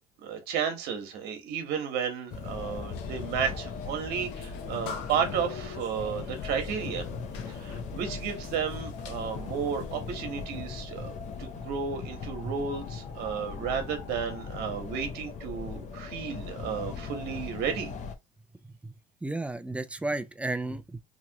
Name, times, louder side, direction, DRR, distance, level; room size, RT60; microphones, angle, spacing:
voice 1, 0.2-7.1 7.5-17.9, right 7 dB, 65° right, 1.2 m, -33 dB
sound 1, 2.3-18.1, left 5 dB, 45° left, 0.7 m, -39 dB
sound 2, 2.9-10.0, left 6 dB, 80° left, 0.7 m, -44 dB
voice 2, 19.2-21.0, right 2 dB, 5° right, 0.4 m, -33 dB
3.0 x 2.5 x 2.9 m
supercardioid pair, 105°, 18 cm